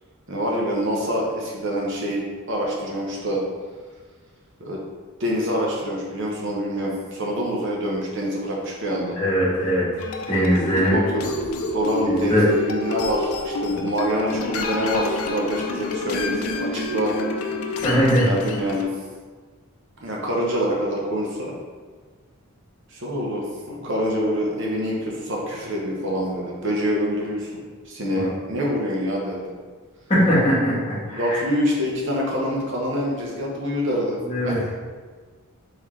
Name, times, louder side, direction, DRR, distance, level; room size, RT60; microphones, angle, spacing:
voice 1, 0.3-2.2 2.5-3.4 4.6-4.8 5.2-9.2 10.3-10.6 10.9-11.2 11.7-17.2 18.2-18.9 20.0-21.5 22.9-27.6 27.9-29.4 31.1-34.2 34.4-34.7, equal, 55° right, -3 dB, 0.9 m, -26 dB
voice 2, 9.2-9.8 10.3-11.0 12.0-12.5 17.8-18.3 28.1-28.3 30.1-31.4 34.3-34.6, equal, 30° left, -8 dB, 1.5 m, -20 dB
sound 1, 10.0-18.8, left 2 dB, 75° left, 0.4 m, -28 dB
3.8 x 3.6 x 3.1 m, 1.5 s
head